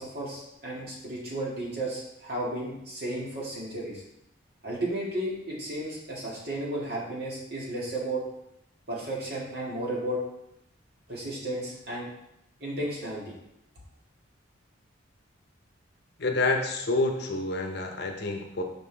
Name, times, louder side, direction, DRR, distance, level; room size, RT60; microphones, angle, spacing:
voice 1, 0.0-4.0 4.6-8.2 8.9-10.2 11.1-12.1 12.6-13.3, right 1 dB, 55° right, -5 dB, 2.0 m, -33 dB
voice 2, 16.2-18.6, left 2 dB, 55° left, 3 dB, 0.8 m, -28 dB
5.7 x 5.2 x 3.4 m, 0.82 s
head